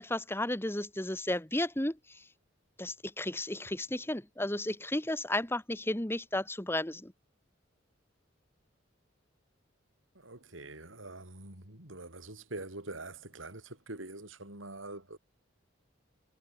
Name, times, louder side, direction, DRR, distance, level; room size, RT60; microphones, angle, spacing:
voice 1, 0.0-2.0 2.8-7.1, left 1 dB, 10° left, 1.8 m, -33 dB
voice 2, 10.1-15.2, right 2 dB, 80° right, 5.5 m, -45 dB
head